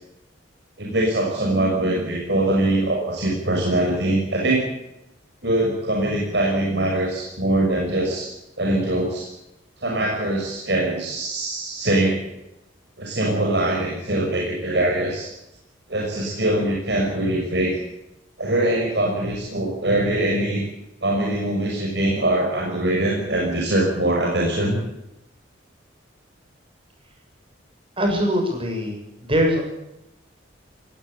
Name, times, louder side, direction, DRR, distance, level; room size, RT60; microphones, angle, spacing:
voice 1, 0.8-4.7 5.4-8.3 8.6-9.3 9.8-12.3 13.0-15.3 15.9-17.8 18.4-20.6 21.0-24.8, right 1 dB, 60° right, -2 dB, 6.2 m, -22 dB
voice 2, 28.0-28.9 29.2-29.6, equal, 30° right, 3 dB, 7.1 m, -21 dB
19.0 x 18.0 x 8.3 m, 0.89 s
head